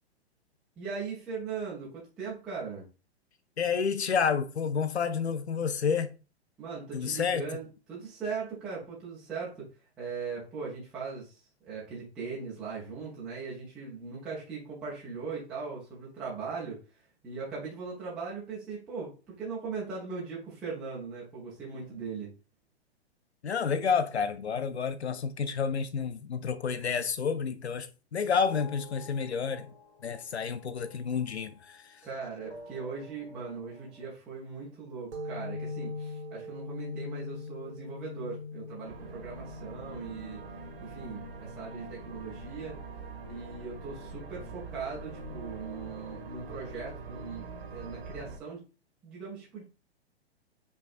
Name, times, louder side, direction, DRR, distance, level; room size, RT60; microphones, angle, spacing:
voice 1, 0.8-2.9 6.6-9.7 10.0-22.3 32.0-40.4 40.8-42.8 43.3-48.6 49.0-49.6, right 5 dB, 5° right, 0.3 m, -39 dB
voice 2, 3.6-6.1 6.9-7.5 23.4-29.7 30.0-32.0, left 6 dB, 75° left, 0.5 m, -30 dB
sound 1, 28.4-32.1 32.4-34.1, left 3 dB, 45° left, 1.1 m, -51 dB
sound 2, 35.1-42.4, left 3 dB, 85° right, 1.0 m, -41 dB
sound 3, 38.8-48.4, right 3 dB, 60° right, 0.9 m, -43 dB
5.2 x 2.4 x 2.4 m
figure-of-eight pair, 110°, 33 cm